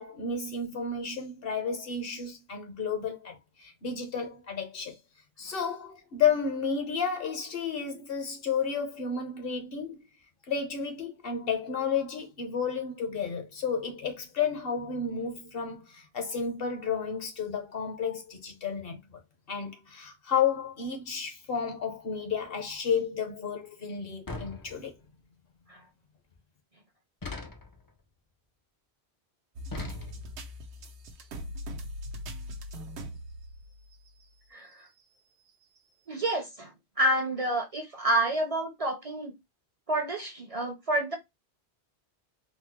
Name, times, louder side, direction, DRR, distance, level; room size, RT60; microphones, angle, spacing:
voice 1, 0.0-5.0 5.4-10.1 10.5-19.2 19.5-24.9, left 6 dB, 60° left, 1.0 m, -32 dB
sound 1, 24.3-25.2 27.2-27.9 29.7-30.5, left 3 dB, 35° left, 0.3 m, -40 dB
sound 2, 29.5-34.2 34.7-34.8 35.8-35.9, equal, 85° right, 1.0 m, -41 dB
voice 2, 36.1-36.7 37.0-39.3 39.9-41.2, right 1 dB, 40° right, 0.6 m, -28 dB
4.0 x 2.0 x 2.9 m
omnidirectional pair, 1.1 m